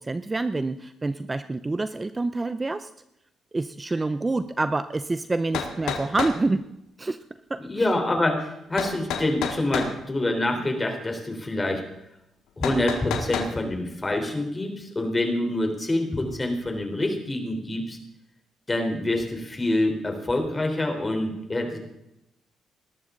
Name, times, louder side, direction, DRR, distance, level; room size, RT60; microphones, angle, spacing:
voice 1, 0.0-2.9 3.5-6.6 7.0-7.2 7.5-7.9, right 3 dB, 20° right, 12 dB, 0.6 m, -27 dB
sound 1, 5.0-5.1 5.5-6.4 8.8-9.9 12.6-13.5, left 7 dB, 85° left, 2.0 m, -29 dB
voice 2, 7.6-11.8 12.6-18.0 18.7-21.8, left 1 dB, 20° left, 3 dB, 4.0 m, -26 dB
20.0 x 13.0 x 4.0 m, 0.85 s
cardioid pair, 90°, 0 cm